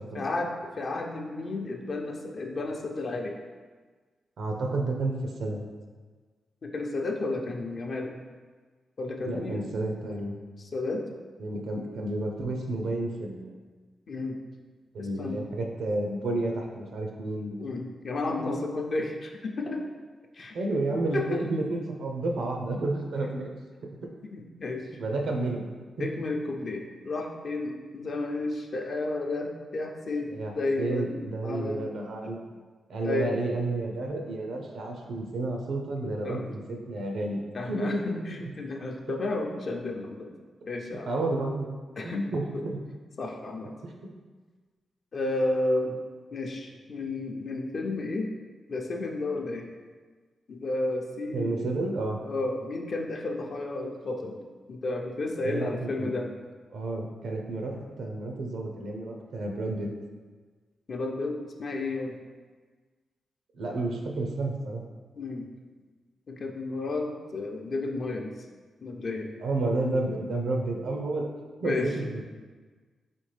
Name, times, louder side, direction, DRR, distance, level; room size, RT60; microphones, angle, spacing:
voice 1, 0.1-3.3 6.6-8.1 9.0-9.6 10.6-11.0 14.1-14.4 15.0-15.4 17.6-19.8 20.3-20.5 21.1-21.4 24.3-24.8 26.0-31.9 32.2-32.3 33.0-33.3 36.2-36.6 37.5-40.3 40.7-41.1 42.0-42.2 42.5-42.6 43.2-43.7 45.1-46.0 46.3-48.3 48.7-49.7 50.5-51.7 52.2-54.4 54.7-56.3 60.9-62.2 65.2-65.5 66.3-68.3 68.8-69.3 71.6-71.9, left 2 dB, 55° left, 1 dB, 0.6 m, -32 dB
voice 2, 4.4-5.6 9.2-10.3 11.4-13.6 14.9-17.6 20.5-23.5 25.0-25.6 26.0-26.1 30.3-32.4 32.9-37.4 37.7-38.5 41.1-41.7 42.0-42.8 43.8-44.1 51.3-52.2 55.4-56.1 56.7-59.9 63.5-64.8 69.4-71.3 71.6-72.2, right 2 dB, 80° right, 2 dB, 0.6 m, -31 dB
4.2 x 3.5 x 3.3 m, 1.4 s
cardioid pair, 60°, 0 cm